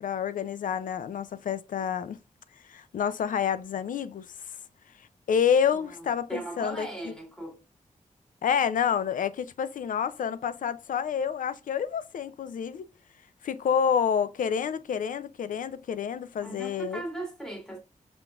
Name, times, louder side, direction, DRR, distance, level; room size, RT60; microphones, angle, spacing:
voice 1, 0.0-2.2 2.7-4.3 5.3-6.9 8.4-12.9 13.4-17.0, left 7 dB, 85° left, 0.4 m, -28 dB
voice 2, 5.7-6.0 6.3-7.6 16.4-17.8, right 2 dB, 5° left, 1.9 m, -38 dB
5.8 x 3.6 x 2.3 m
wide cardioid pair, 125°, 13 cm